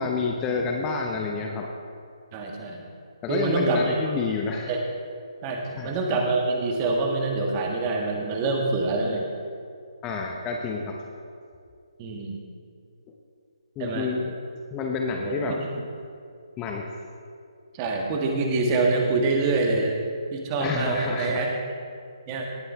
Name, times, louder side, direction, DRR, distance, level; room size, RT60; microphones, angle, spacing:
voice 1, 0.0-1.7 3.2-4.7 5.8-5.9 10.0-11.0 13.8-14.3 14.7-15.6 16.6-16.9 20.6-21.5, left 4 dB, 15° left, 1 dB, 0.7 m, -29 dB
voice 2, 2.3-2.9 3.3-4.2 4.7-4.8 5.4-9.3 12.0-12.4 13.8-14.1 15.2-15.7 17.7-19.9 20.3-21.5 22.3-22.5, right 3 dB, 25° right, 1 dB, 1.5 m, -25 dB
18.5 x 7.7 x 3.5 m, 2.4 s
figure-of-eight pair, 140°, 3 cm